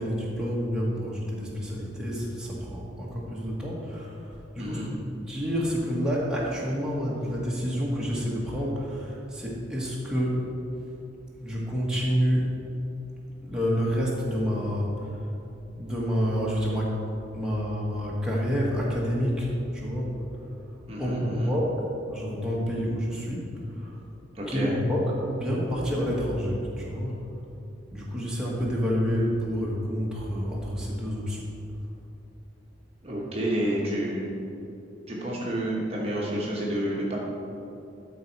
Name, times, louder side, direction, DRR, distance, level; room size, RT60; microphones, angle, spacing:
voice 1, 0.0-10.4 11.4-12.5 13.4-15.1 15.8-16.9 17.3-20.2 21.0-21.7 22.1-23.5 23.8-23.9 24.5-25.0 25.3-27.2 27.9-31.4, equal, 5° right, -6 dB, 1.2 m, -28 dB
voice 2, 4.6-4.9 20.9-21.5 24.3-24.8 33.0-34.3 35.1-37.2, right 1 dB, 30° right, -4 dB, 1.0 m, -29 dB
12.0 x 4.1 x 4.5 m, 2.8 s
head